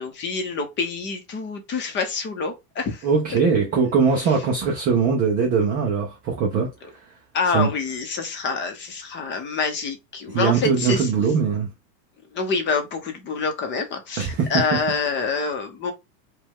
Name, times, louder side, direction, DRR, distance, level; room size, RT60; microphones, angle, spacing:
voice 1, 0.0-3.1 7.3-11.1 12.3-15.9, left 4 dB, 25° left, 0.7 m, -26 dB
voice 2, 3.0-7.0 7.5-7.7 10.3-11.7 14.2-14.8, right 5 dB, 20° right, 0.3 m, -21 dB
5.2 x 2.3 x 3.5 m
supercardioid pair, 165°, 49 cm